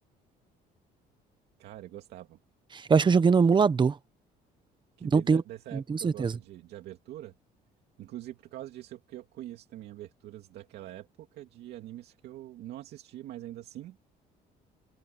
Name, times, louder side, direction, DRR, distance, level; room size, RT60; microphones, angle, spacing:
voice 1, 1.6-2.4 5.0-7.3 8.0-14.0, right 14 dB, 75° right, 2.6 m, -44 dB
voice 2, 2.7-4.0 5.0-5.4 5.7-6.4, right 5 dB, 30° right, 1.1 m, -23 dB
cardioid pair, 110°, 17 cm